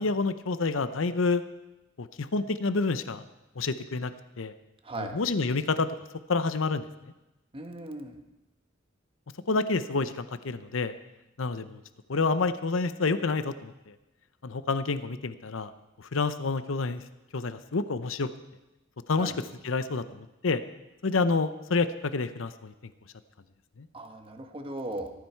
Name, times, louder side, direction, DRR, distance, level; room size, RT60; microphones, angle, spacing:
voice 1, 0.0-1.4 2.0-3.2 3.6-4.1 4.4-4.5 5.0-5.9 6.3-6.8 9.5-10.9 11.4-11.8 12.1-13.9 14.4-15.7 16.1-17.0 17.3-18.3 19.1-19.3 19.6-20.6 21.0-22.7, left 3 dB, 70° left, 12 dB, 0.7 m, -28 dB
voice 2, 4.8-5.2 7.5-8.2 19.2-19.4 23.9-25.1, right 2 dB, 30° right, 5 dB, 1.7 m, -37 dB
18.0 x 14.0 x 4.6 m, 0.98 s
head